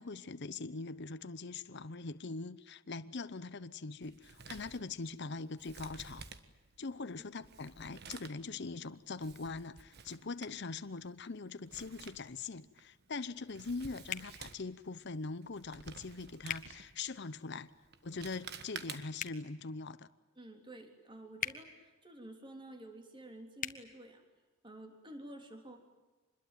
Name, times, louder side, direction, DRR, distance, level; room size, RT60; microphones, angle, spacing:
voice 1, 0.0-6.3 6.8-17.7 18.0-20.1, left 3 dB, 55° left, 0.8 m, -42 dB
Male speech man speaking, 4.0-19.3, right 6 dB, 50° right, 1.5 m, -53 dB
sound 1, 14.1-14.3 16.5-16.7 19.1-19.4 21.4-21.6 23.6-23.8, left 8 dB, 40° left, 1.4 m, -38 dB
voice 2, 20.4-24.2 24.6-25.8, right 1 dB, 25° right, 3.4 m, -51 dB
25.5 x 21.5 x 9.2 m
head